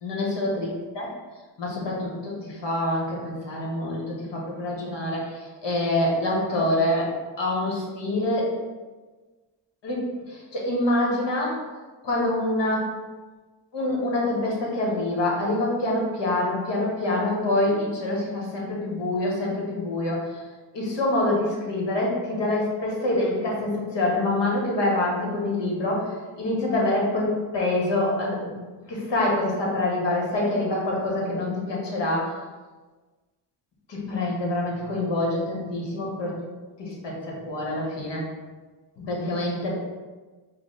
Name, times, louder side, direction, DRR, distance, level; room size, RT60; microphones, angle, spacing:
voice 1, 0.0-0.7 0.9-1.1 1.6-7.1 7.4-8.5 9.8-11.6 12.0-12.9 13.7-20.4 20.7-28.5 28.9-32.3 33.9-36.4 36.8-38.3 39.0-39.8, left 1 dB, 65° left, -3 dB, 1.4 m, -26 dB
4.5 x 2.2 x 4.1 m, 1.3 s
supercardioid pair, 50°, 46 cm